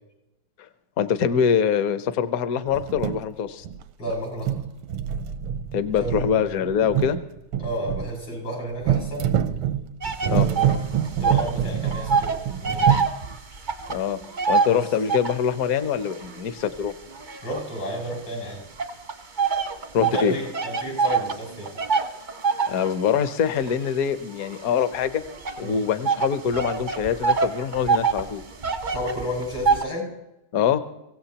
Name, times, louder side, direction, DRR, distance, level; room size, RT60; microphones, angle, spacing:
voice 1, 1.0-3.6 5.7-7.2 10.3-10.5 13.9-14.2 14.5-16.9 19.9-20.3 22.7-25.2 25.6-28.4 30.5-30.8, left 7 dB, 55° left, 11 dB, 1.0 m, -24 dB
sound 1, 2.7-3.3 3.6-4.1 4.4-8.1 8.8-13.1, right 10 dB, 85° right, 1.6 m, -26 dB
voice 2, 4.0-4.5 6.0-6.4 7.6-9.3 10.2-10.8 11.2-13.0 14.7-14.9 17.4-18.6 20.0-21.7 25.6-25.8 28.9-30.1, equal, 85° left, 0 dB, 7.1 m, -32 dB
sound 2, 10.0-11.6 11.8-15.5 16.1-18.2 18.8-29.8, right 5 dB, 50° right, 0.5 m, -25 dB
24.0 x 16.5 x 2.9 m, 0.93 s
omnidirectional pair, 2.3 m